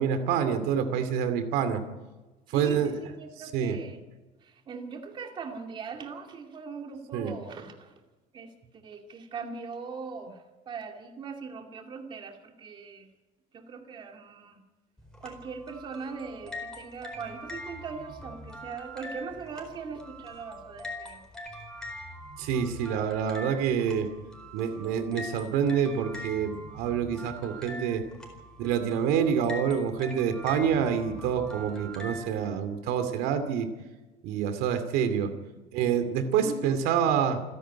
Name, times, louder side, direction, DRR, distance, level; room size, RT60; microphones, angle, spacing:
voice 1, 0.0-1.8 2.5-2.9 3.4-3.8 7.1-7.3 22.4-24.1 24.5-28.0 28.6-33.7 34.2-35.3 35.7-37.4, right 8 dB, 80° right, 10 dB, 2.5 m, -27 dB
voice 2, 2.5-4.0 4.4-7.9 8.3-13.1 13.5-14.6 15.2-21.2 36.4-36.7, right 5 dB, 30° right, 3 dB, 2.4 m, -40 dB
sound 1, 15.0-32.3, left 1 dB, 5° left, 4.4 m, -43 dB
28.5 x 10.5 x 9.6 m, 1.2 s
cardioid pair, 165°, 16 cm